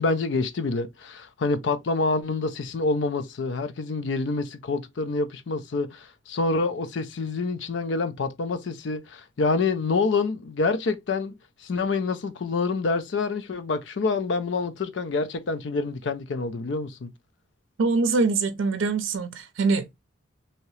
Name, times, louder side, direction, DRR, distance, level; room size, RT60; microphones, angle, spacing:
voice 1, 0.0-11.3 11.6-17.1, left 3 dB, 65° left, 0.4 m, -27 dB
voice 2, 17.8-19.9, right 4 dB, 90° right, 0.5 m, -24 dB
2.8 x 2.8 x 3.0 m
head